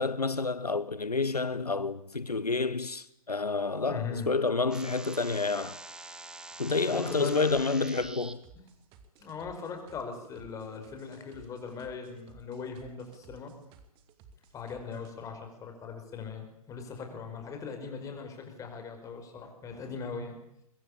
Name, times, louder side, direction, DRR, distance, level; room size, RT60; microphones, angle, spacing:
voice 1, 0.0-5.8 6.6-8.4, left 3 dB, 80° left, 1.0 m, -29 dB
voice 2, 3.9-4.3 6.8-7.4 9.2-13.5 14.5-20.4, left 5 dB, 15° left, 5.2 m, -40 dB
sound 1, 4.7-8.3, right 2 dB, 5° right, 1.1 m, -45 dB
sound 2, 7.5-15.1, right 5 dB, 25° right, 2.7 m, -57 dB
23.5 x 21.5 x 8.7 m
figure-of-eight pair, 120°, 20 cm